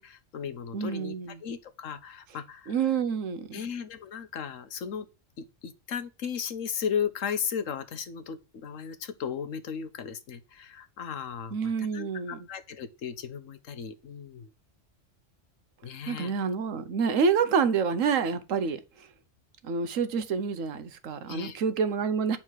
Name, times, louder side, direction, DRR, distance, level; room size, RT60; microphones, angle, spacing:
voice 1, 0.0-2.7 3.5-5.1 5.4-14.5 15.8-16.3 21.3-21.6, left 7 dB, 80° left, 1.3 m, -36 dB
voice 2, 0.7-1.4 2.7-3.6 11.5-12.5 16.1-18.8 19.6-22.4, right 6 dB, 85° right, 1.3 m, -28 dB
9.1 x 4.3 x 6.4 m
omnidirectional pair, 1.3 m